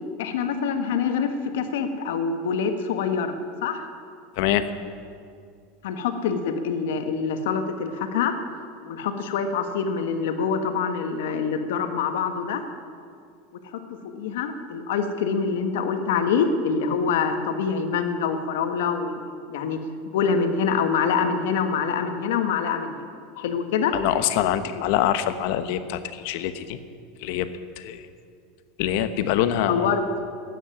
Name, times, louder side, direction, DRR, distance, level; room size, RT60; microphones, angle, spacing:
voice 1, 0.2-3.8 5.8-8.4 8.9-12.6 13.7-19.2 19.5-19.8 20.1-23.1 23.4-23.9 29.7-30.1, left 6 dB, 80° left, 7 dB, 1.5 m, -25 dB
voice 2, 23.9-26.8 27.2-27.5 27.8-28.0 28.8-29.9, left 11 dB, 65° left, 11 dB, 1.0 m, -24 dB
13.5 x 9.3 x 9.9 m, 2.2 s
supercardioid pair, 135°, 0 cm